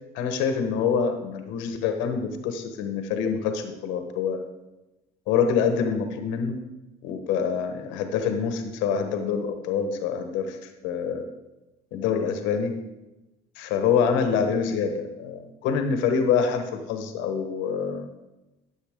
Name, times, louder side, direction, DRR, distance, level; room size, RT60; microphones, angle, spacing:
voice 1, 0.1-4.4 5.3-6.6 7.0-10.6 10.8-11.2 11.9-12.7 13.6-18.1, left 6 dB, 85° left, 7 dB, 1.1 m, -26 dB
13.5 x 7.2 x 3.6 m, 1.0 s
cardioid pair, 115°, 19 cm